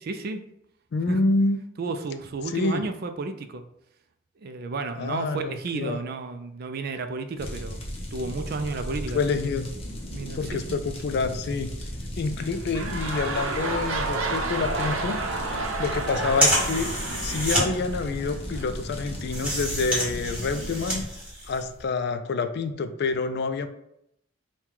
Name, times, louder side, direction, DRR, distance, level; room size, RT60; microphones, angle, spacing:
voice 1, 0.1-0.4 1.1-1.2 1.8-3.6 4.4-9.2 10.1-10.8, right 3 dB, 50° right, 7 dB, 0.4 m, -32 dB
voice 2, 0.9-1.6 2.5-2.8 5.0-6.0 9.1-9.7 10.3-11.7 12.2-15.2 15.8-16.9 17.2-21.0 21.5-23.7, left 4 dB, 55° left, 9 dB, 0.3 m, -27 dB
sound 1, 7.4-21.0, equal, 30° left, 0.8 m, -36 dB
sound 2, 12.3-18.6 19.3-19.4, right 3 dB, 90° right, 0.7 m, -31 dB
sound 3, 13.9-21.8, right 1 dB, 5° right, 1.4 m, -29 dB
4.5 x 2.3 x 3.7 m, 0.77 s
head